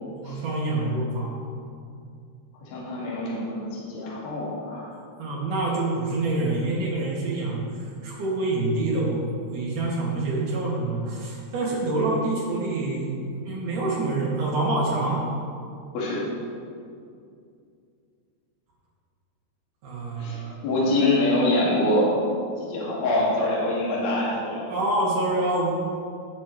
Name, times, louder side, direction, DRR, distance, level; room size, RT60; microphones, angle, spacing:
voice 1, 0.2-1.3 5.2-13.1 13.4-15.2 19.8-20.5 24.7-25.7, right 2 dB, 55° right, -5 dB, 3.3 m, -26 dB
voice 2, 2.6-4.8 15.9-16.2 20.2-22.2 22.6-24.6, left 1 dB, 65° left, -7 dB, 3.9 m, -25 dB
18.5 x 7.0 x 3.2 m, 2.4 s
omnidirectional pair, 4.9 m